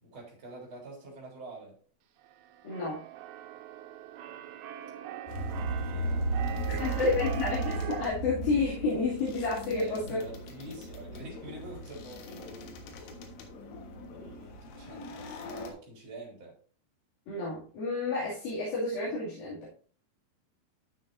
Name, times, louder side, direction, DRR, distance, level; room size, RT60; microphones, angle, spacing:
voice 1, 0.0-1.8 5.5-7.1 9.7-13.2 14.1-16.6, right 2 dB, 25° right, 4.0 m, -46 dB
Keyboard (musical), 2.2-8.1, right 12 dB, 85° right, 3.4 m, -42 dB
voice 2, 2.6-3.0 6.8-10.2 17.3-19.7, left 3 dB, 50° left, 3.8 m, -30 dB
sound 1, 5.3-15.7, right 1 dB, 75° left, 3.8 m, -36 dB
13.5 x 6.2 x 2.6 m
omnidirectional pair, 5.8 m